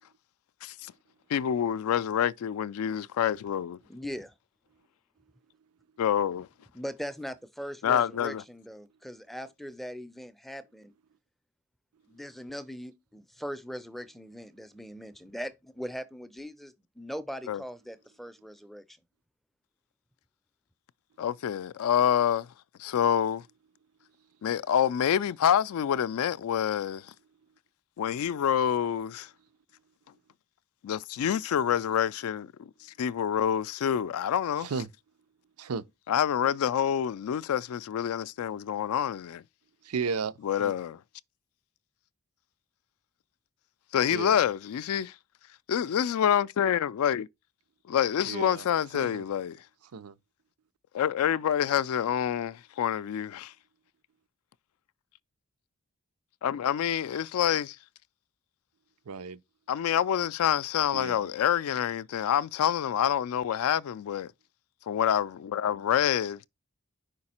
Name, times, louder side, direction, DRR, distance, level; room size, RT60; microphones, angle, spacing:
voice 1, 0.6-0.9 1.3-3.8 6.0-6.5 7.8-8.4 17.5-17.6 21.2-22.5 22.8-23.5 24.4-27.1 28.0-29.3 30.8-34.7 36.1-39.4 40.4-41.0 43.9-45.2 45.7-47.3 47.9-49.6 50.9-53.5 56.4-57.8 59.7-64.3 64.9-66.4, left 9 dB, 75° left, 0.3 m, -27 dB
voice 2, 3.9-4.3 6.7-10.9 12.1-19.0, equal, ahead, 0.4 m, -40 dB
voice 3, 34.6-34.9 35.6-35.8 39.8-40.7 44.1-44.4 48.3-48.7 48.9-49.2 49.9-50.2 59.1-59.4 60.9-61.3, right 5 dB, 85° right, 0.5 m, -34 dB
5.1 x 4.8 x 4.2 m
head